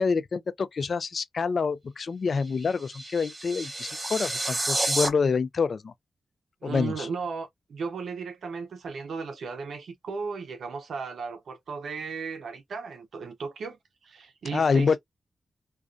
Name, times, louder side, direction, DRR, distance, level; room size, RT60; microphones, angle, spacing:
voice 1, 0.0-5.9 6.6-7.1 14.5-15.0, left 5 dB, 65° left, 0.3 m, -27 dB
sound 1, 2.4-5.1, right 2 dB, 35° right, 0.7 m, -30 dB
voice 2, 6.6-15.0, right 5 dB, 85° right, 0.5 m, -36 dB
2.3 x 2.2 x 2.4 m
cardioid pair, 60°, 0 cm